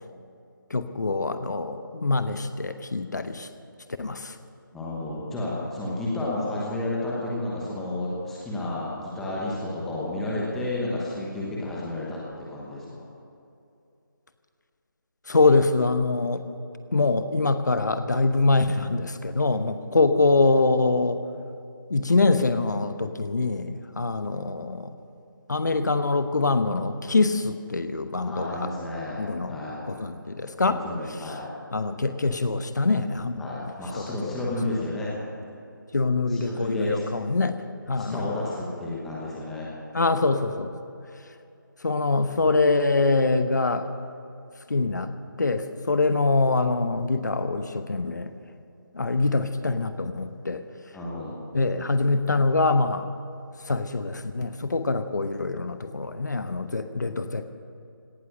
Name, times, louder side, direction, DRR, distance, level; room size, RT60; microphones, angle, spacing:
voice 1, 0.7-3.5 4.0-4.4 15.3-16.4 16.9-21.2 21.9-24.9 25.5-28.7 29.2-29.6 29.9-30.8 31.7-33.6 33.9-34.1 35.9-38.3 39.9-40.7 41.8-43.9 44.7-45.1 45.4-48.3 48.9-50.6 51.5-53.1 53.7-57.5, left 3 dB, 55° left, 10 dB, 1.0 m, -24 dB
voice 2, 4.7-13.0 28.2-29.8 30.6-31.5 33.4-35.1 36.3-37.0 38.0-39.7 50.9-51.4, left 2 dB, ahead, -6 dB, 1.1 m, -31 dB
17.5 x 12.5 x 6.6 m, 2.6 s
figure-of-eight pair, 170°, 11 cm